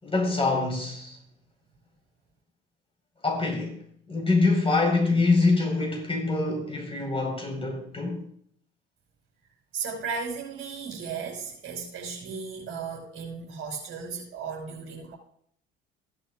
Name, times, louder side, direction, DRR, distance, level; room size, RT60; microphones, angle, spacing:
voice 1, 0.0-1.2 3.2-3.8 4.1-8.2, left 3 dB, 15° left, 4.4 m, -25 dB
voice 2, 9.7-15.2, right 5 dB, 40° right, 5.1 m, -35 dB
16.0 x 11.0 x 2.4 m
figure-of-eight pair, 55°, 31 cm